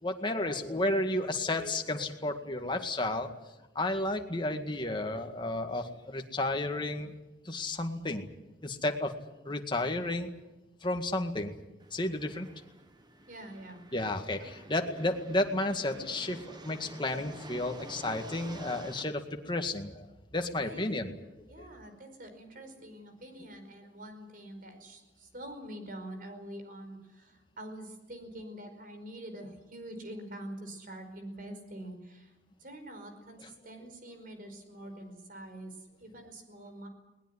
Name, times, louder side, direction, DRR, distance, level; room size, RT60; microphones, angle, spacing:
voice 1, 0.0-3.3 3.8-7.1 7.5-8.3 8.6-9.2 9.5-10.3 10.8-11.5 11.9-12.5 13.9-20.1 20.3-21.1, left 2 dB, 25° left, 4 dB, 1.9 m, -32 dB
sound 1, 11.8-19.0, right 1 dB, 25° right, 1.5 m, -49 dB
voice 2, 13.3-13.8 20.6-21.0 21.5-32.3 32.6-36.9, right 1 dB, 50° right, 6 dB, 5.1 m, -45 dB
21.0 x 19.5 x 9.9 m, 1.0 s
head